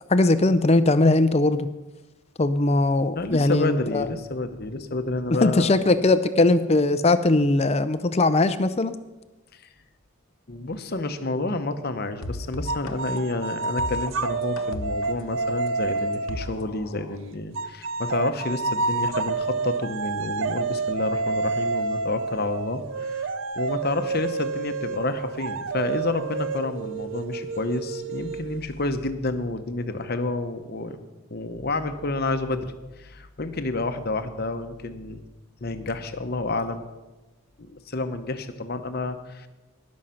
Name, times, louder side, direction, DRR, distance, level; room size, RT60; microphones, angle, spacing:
voice 1, 0.1-1.7 2.4-4.1 5.4-8.9, left 2 dB, 30° left, 12 dB, 0.5 m, -20 dB
voice 2, 3.1-5.7 9.5-9.6 10.5-31.0 31.3-35.2 35.6-36.9 37.6-39.5, left 2 dB, 45° left, 8 dB, 0.9 m, -29 dB
sound 1, 12.2-17.2, left 1 dB, 75° left, 1.0 m, -36 dB
sound 2, 12.7-16.6 17.6-28.9, right 3 dB, 65° right, 0.5 m, -29 dB
18.5 x 6.4 x 5.8 m, 1.1 s
head